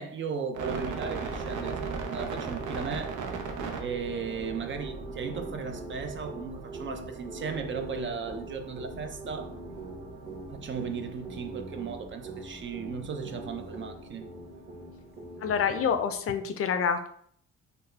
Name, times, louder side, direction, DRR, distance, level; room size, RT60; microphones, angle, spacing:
voice 1, 0.0-3.2 3.8-9.5 10.5-14.3, right 5 dB, 40° right, 0.5 m, -36 dB
sound 1, 0.5-16.1, right 4 dB, 75° right, 0.7 m, -39 dB
sound 2, 4.7-16.1, right 1 dB, 20° right, 1.1 m, -44 dB
voice 2, 15.4-17.1, left 7 dB, 50° left, 0.5 m, -27 dB
4.0 x 2.2 x 3.2 m
cardioid pair, 90°, 30 cm